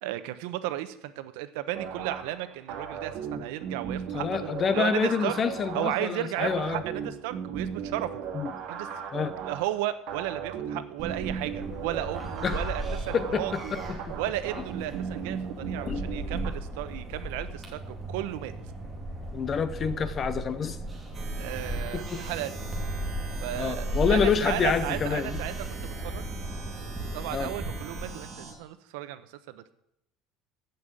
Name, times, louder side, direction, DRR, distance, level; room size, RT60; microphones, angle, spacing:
voice 1, 0.0-5.4 5.7-8.2 8.7-8.9 9.4-13.7 14.1-18.5 21.4-22.5 23.4-25.5 25.8-26.3 27.1-29.7, right 14 dB, 85° right, 12 dB, 0.9 m, -34 dB
sound 1, 1.7-16.5, right 7 dB, 55° right, 2.2 m, -37 dB
voice 2, 4.1-6.8 8.3-8.5 9.1-9.4 12.4-12.6 13.1-14.2 15.6-16.0 19.3-20.8 21.9-22.2 23.6-25.4 27.3-27.5, left 6 dB, 25° left, 13 dB, 0.7 m, -28 dB
sound 2, 11.0-28.2, right 1 dB, 5° right, 2.3 m, -36 dB
sound 3, 21.1-28.5, right 4 dB, 25° right, 2.0 m, -43 dB
14.5 x 5.6 x 7.6 m, 0.80 s
cardioid pair, 180°, 0 cm